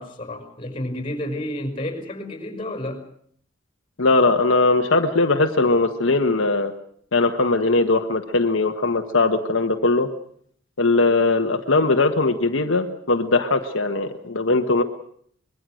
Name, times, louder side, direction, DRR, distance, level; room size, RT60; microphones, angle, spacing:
voice 1, 0.0-3.0, left 1 dB, 30° left, 6 dB, 5.5 m, -30 dB
voice 2, 4.0-6.7 7.1-10.1 10.8-14.8, left 3 dB, 80° left, 4 dB, 1.4 m, -20 dB
25.0 x 22.0 x 6.4 m, 0.64 s
head